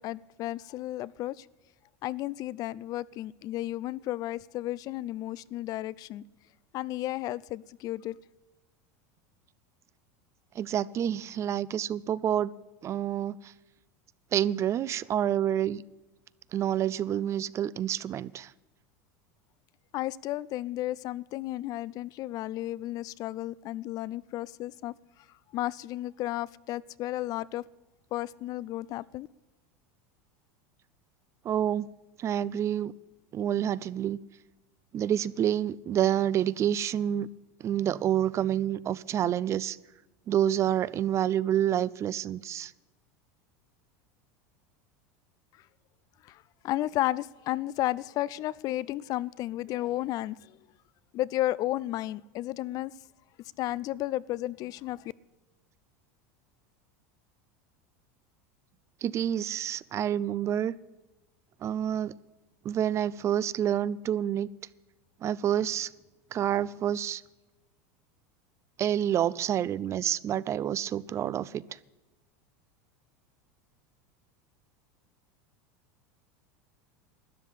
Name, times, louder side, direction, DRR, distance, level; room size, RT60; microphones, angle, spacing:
voice 1, 0.0-1.5 2.0-6.2 6.7-8.2 19.9-24.9 25.5-27.6 28.1-29.3 46.2-50.6 51.1-52.9 53.6-55.1, left 15 dB, 45° left, 0.4 m, -33 dB
voice 2, 10.6-12.5 12.8-13.4 14.3-15.8 16.5-18.5 31.4-31.9 32.2-32.9 33.3-34.2 34.9-37.3 37.6-39.8 40.3-42.7 59.0-60.7 61.6-62.1 62.6-64.5 65.2-65.9 66.3-67.2 68.8-71.6, right 10 dB, 35° right, 0.5 m, -28 dB
13.0 x 10.5 x 8.4 m
supercardioid pair, 115°, 9 cm